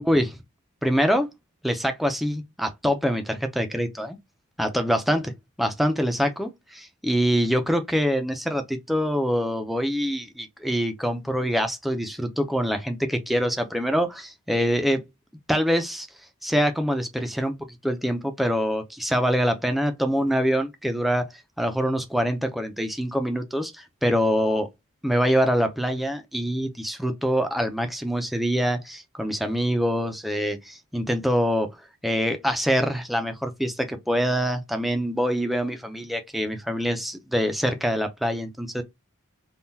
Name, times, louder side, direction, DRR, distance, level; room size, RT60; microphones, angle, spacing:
voice 1, 0.0-0.4 0.8-1.3 1.6-4.2 4.6-5.3 5.6-15.0 15.5-16.1 16.4-17.5 17.8-21.3 21.6-23.7 24.0-24.7 25.0-31.7 32.0-38.8, equal, ahead, 0.5 m, -25 dB
3.6 x 2.4 x 2.7 m
head